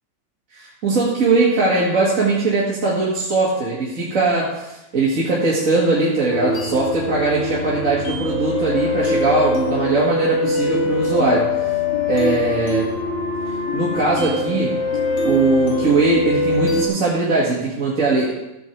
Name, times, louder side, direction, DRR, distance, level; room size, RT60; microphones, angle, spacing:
voice 1, 0.5-11.8 12.1-12.9 13.7-14.7 15.2-18.3, right 3 dB, 45° right, -6 dB, 2.3 m, -20 dB
sound 1, 6.3-16.9, left 2 dB, 70° left, 2.3 m, -23 dB
14.5 x 7.6 x 4.6 m, 0.96 s
omnidirectional pair, 2.1 m